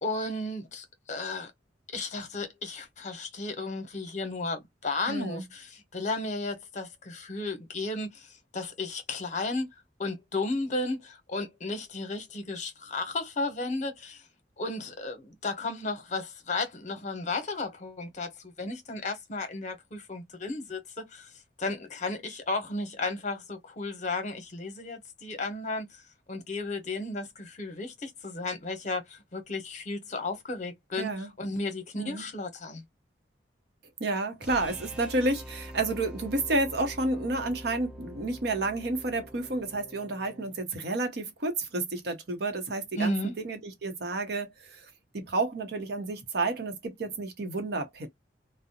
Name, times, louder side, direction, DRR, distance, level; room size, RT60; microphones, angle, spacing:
voice 1, 0.0-1.5 1.9-9.7 10.0-14.3 14.6-21.3 21.6-26.0 26.3-32.8 43.0-43.3, left 2 dB, 45° left, 0.8 m, -34 dB
voice 2, 5.1-5.4 31.0-31.3 31.9-32.3 34.0-44.9 45.1-48.1, right 2 dB, 65° right, 0.8 m, -30 dB
sound 1, 34.4-40.6, equal, 5° right, 0.5 m, -45 dB
2.4 x 2.0 x 2.8 m
head